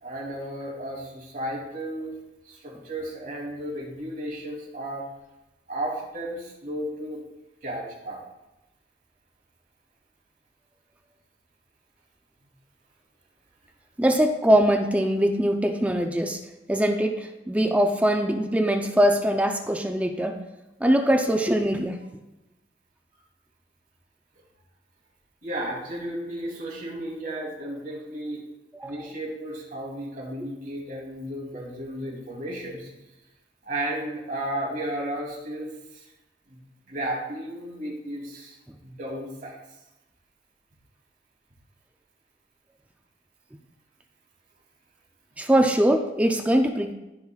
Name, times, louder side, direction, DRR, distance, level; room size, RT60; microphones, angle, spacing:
voice 1, 0.0-2.1 2.4-5.0 5.7-7.2 7.6-8.2 25.4-28.4 28.8-32.9 33.6-36.0 36.5-36.6 36.9-39.6, right 1 dB, 50° right, -4 dB, 2.9 m, -34 dB
voice 2, 14.0-16.4 16.7-20.4 20.8-22.0 28.8-29.1 45.4-46.9, equal, 10° right, 4 dB, 0.5 m, -22 dB
14.5 x 5.5 x 2.4 m, 0.99 s
head